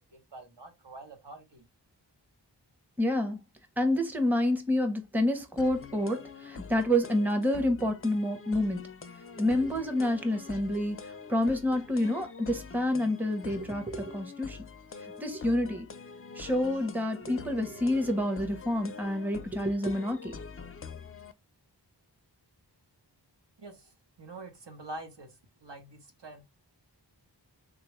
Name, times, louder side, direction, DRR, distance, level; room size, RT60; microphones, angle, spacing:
voice 1, 0.1-1.7 23.6-26.5, right 2 dB, 75° right, 0.9 m, -46 dB
voice 2, 3.0-3.4 3.8-8.8 9.4-11.0 11.3-14.6 15.2-15.9 16.4-20.3, left 1 dB, 5° right, 0.7 m, -28 dB
sound 1, 5.6-21.3, left 5 dB, 35° left, 0.4 m, -45 dB
3.6 x 2.3 x 3.0 m
wide cardioid pair, 40°, 43 cm